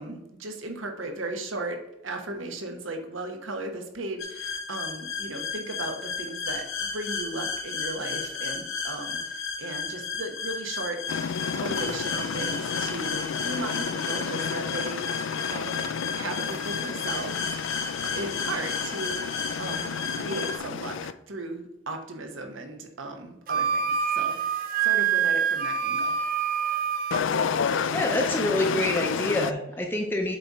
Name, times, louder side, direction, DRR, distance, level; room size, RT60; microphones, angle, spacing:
voice 1, 0.0-11.0 11.5-17.5 18.1-26.2, right 2 dB, 75° right, 4 dB, 1.2 m, -36 dB
sound 1, 4.2-20.6, left 5 dB, 90° left, 1.5 m, -33 dB
sound 2, 11.1-21.1 27.1-29.5, left 6 dB, 70° left, 0.4 m, -31 dB
Wind instrument woodwind instrument, 23.5-27.2, right 7 dB, 45° right, 0.6 m, -26 dB
voice 2, 27.6-30.4, left 1 dB, 10° left, 1 dB, 0.6 m, -27 dB
7.6 x 4.1 x 4.8 m, 0.89 s
head